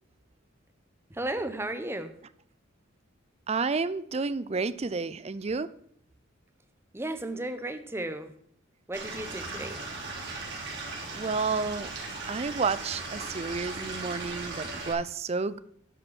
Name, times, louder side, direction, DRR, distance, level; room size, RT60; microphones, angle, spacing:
voice 1, 1.1-2.1 6.9-8.3 8.9-9.8, right 1 dB, 15° right, 8 dB, 0.9 m, -34 dB
voice 2, 3.5-5.7 11.1-11.9 12.3-15.6, right 4 dB, 30° right, 15 dB, 0.4 m, -30 dB
Stream / Liquid, 8.9-14.9, right 3 dB, 60° right, 3.1 m, -38 dB
10.5 x 5.3 x 7.2 m, 0.67 s
head